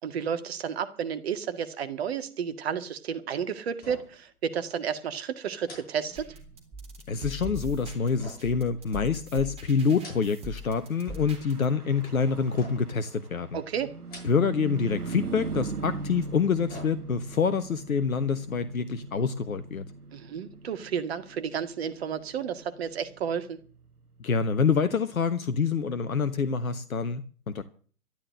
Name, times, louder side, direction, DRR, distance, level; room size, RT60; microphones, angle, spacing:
voice 1, 0.0-6.3 13.5-13.9 20.1-23.6, right 7 dB, 45° right, 2.0 m, -32 dB
sound 1, 3.7-4.3 4.6-4.7 5.6-6.7 8.2-9.3 9.8-10.6 10.9-11.5 12.6-13.1 13.9-14.7 15.0-15.1 16.2-17.4 17.8-17.9, left 1 dB, 20° left, 8.0 m, -48 dB
sound 2, 6.1-11.7, equal, 15° right, 3.6 m, -42 dB
voice 2, 7.1-13.6 14.2-19.8 24.2-27.6, left 5 dB, 65° left, 1.3 m, -26 dB
Car passing by / Truck, 11.0-24.7, right 4 dB, 85° right, 1.4 m, -41 dB
12.5 x 12.0 x 7.8 m
figure-of-eight pair, 125°, 44 cm